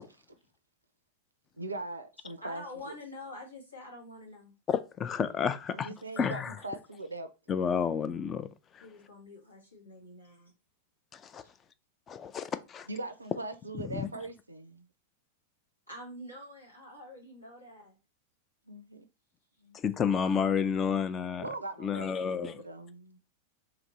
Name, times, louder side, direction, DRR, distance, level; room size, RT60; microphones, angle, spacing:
voice 1, 1.5-3.0 5.7-7.3 12.9-14.9 18.7-19.1 19.6-19.8 21.4-23.2, right 2 dB, 80° right, 0.4 m, -41 dB
voice 2, 2.4-4.5 8.8-10.5 11.4-11.5 15.9-18.0, left 1 dB, 85° left, 1.6 m, -46 dB
voice 3, 4.7-5.9 6.2-6.5 7.5-8.5 8.7-8.8 11.1-11.4 12.1-12.5 12.7-12.9 13.9-14.1 19.7-21.5 21.8-22.6, left 7 dB, 25° left, 0.3 m, -30 dB
2.9 x 2.5 x 4.1 m
figure-of-eight pair, 90°, 0 cm